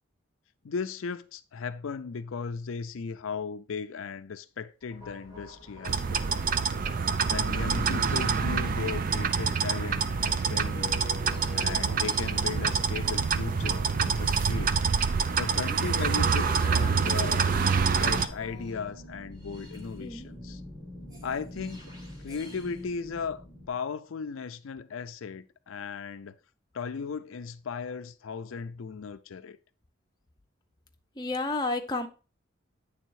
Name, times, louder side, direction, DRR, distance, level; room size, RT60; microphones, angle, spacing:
voice 1, 0.6-6.5 7.3-11.0 11.5-14.8 15.4-20.6 21.2-21.9 22.2-26.4 26.7-29.6, left 5 dB, 85° left, 0.5 m, -37 dB
sound 1, 4.8-23.7, left 1 dB, 20° right, 1.6 m, -43 dB
sound 2, 5.7-14.6, right 2 dB, 65° right, 1.3 m, -50 dB
sound 3, 5.8-18.3, right 5 dB, 45° right, 0.4 m, -26 dB
voice 2, 31.2-32.1, left 2 dB, 20° left, 0.6 m, -31 dB
9.0 x 3.5 x 4.6 m
head